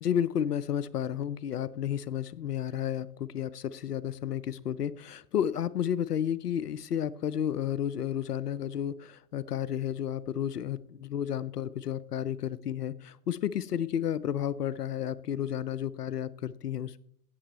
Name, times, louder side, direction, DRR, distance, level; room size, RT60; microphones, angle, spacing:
voice 1, 0.0-17.0, left 9 dB, 80° left, 18 dB, 0.7 m, -32 dB
16.0 x 7.1 x 4.1 m, 0.67 s
figure-of-eight pair, 95°, 46 cm